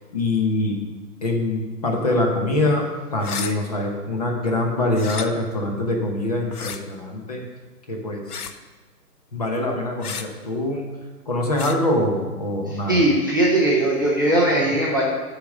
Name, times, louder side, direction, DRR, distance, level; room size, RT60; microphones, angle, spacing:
voice 1, 0.1-0.8 1.2-2.9 3.1-7.4 7.9-8.2 9.3-10.9 11.3-13.0 14.6-14.7, left 2 dB, 25° left, 1 dB, 0.9 m, -24 dB
sound 1, 3.2-3.5 4.9-5.3 6.5-6.8 8.3-8.6 10.0-10.3 11.5-11.8, left 7 dB, 65° left, 0.8 m, -32 dB
voice 2, 12.7-15.0, right 1 dB, 15° right, -5 dB, 0.6 m, -19 dB
10.0 x 5.0 x 6.3 m, 1.3 s
hypercardioid pair, 165°, 50 cm